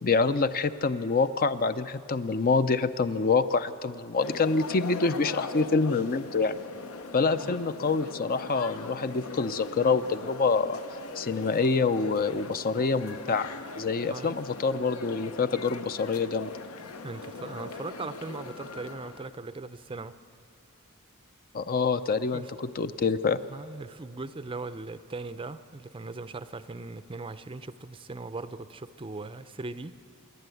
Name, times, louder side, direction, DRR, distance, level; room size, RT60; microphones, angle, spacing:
voice 1, 0.0-6.6 7.1-10.8 11.2-13.5 13.8-16.5 21.5-23.4, left 4 dB, 40° left, 12 dB, 0.5 m, -26 dB
sound 1, 4.2-19.3, left 3 dB, 70° left, 1.0 m, -40 dB
voice 2, 14.1-14.4 17.0-20.2 22.3-22.5 23.5-29.9, right 3 dB, 25° right, 13 dB, 0.5 m, -39 dB
27.0 x 11.5 x 9.2 m, 2.3 s
head